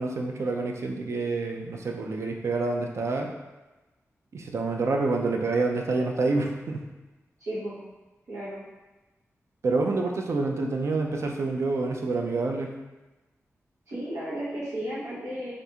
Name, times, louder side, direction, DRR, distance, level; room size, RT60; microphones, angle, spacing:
voice 1, 0.0-3.3 4.3-6.9 9.6-12.7, right 3 dB, 60° right, 2 dB, 0.4 m, -27 dB
voice 2, 7.4-7.8 8.3-8.6 13.9-15.5, right 1 dB, 85° right, -9 dB, 1.0 m, -34 dB
3.4 x 2.5 x 2.8 m, 1.1 s
wide cardioid pair, 105°, 5 cm